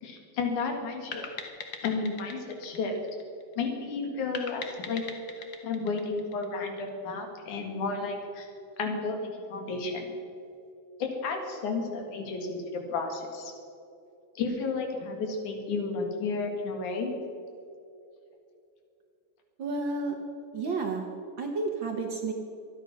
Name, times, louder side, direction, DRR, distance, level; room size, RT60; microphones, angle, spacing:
voice 1, 0.0-1.2 1.8-2.9 3.6-5.0 5.6-8.5 8.8-10.1 11.0-13.5 14.4-17.1, left 4 dB, 85° left, 3 dB, 3.4 m, -32 dB
sound 1, 1.1-3.7 4.3-6.9, left 6 dB, 55° left, 1.5 m, -41 dB
voice 2, 19.6-20.1 20.5-21.1 21.4-22.3, right 3 dB, 55° right, 3 dB, 1.5 m, -31 dB
24.5 x 9.2 x 6.0 m, 2.6 s
omnidirectional pair, 3.4 m